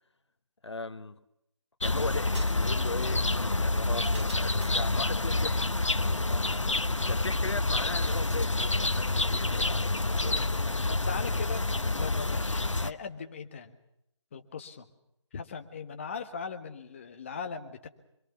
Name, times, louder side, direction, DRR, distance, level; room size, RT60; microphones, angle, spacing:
voice 1, 0.6-1.2 1.8-5.7 6.1-6.5 7.1-10.8, left 3 dB, 60° left, 11 dB, 1.5 m, -39 dB
sound 1, 1.8-12.9, left 2 dB, 80° left, 1.1 m, -28 dB
sound 2, 2.3-5.0, right 1 dB, 65° right, 4.6 m, -47 dB
sound 3, 3.9-9.8, right 2 dB, 45° right, 2.6 m, -51 dB
voice 2, 10.9-11.7 11.9-13.8 14.3-14.9 15.3-17.9, left 5 dB, 25° left, 7 dB, 1.4 m, -39 dB
25.5 x 22.5 x 7.0 m, 0.82 s
figure-of-eight pair, 155°, 16 cm